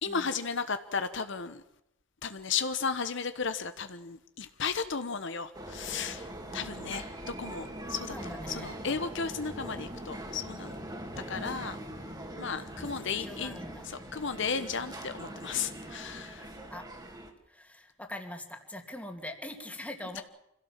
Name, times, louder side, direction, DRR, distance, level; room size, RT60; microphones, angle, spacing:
voice 1, 0.0-1.6 2.2-7.0 7.4-10.7 11.3-11.8 12.4-13.6 14.1-16.5, left 5 dB, 65° left, 10 dB, 1.1 m, -34 dB
sound 1, 5.5-17.3, right 1 dB, 20° right, 2.5 m, -42 dB
voice 2, 7.9-8.7 12.8-13.9 16.7-16.9 17.5-20.2, left 1 dB, 5° left, 4 dB, 2.5 m, -43 dB
26.0 x 16.5 x 7.4 m, 0.83 s
head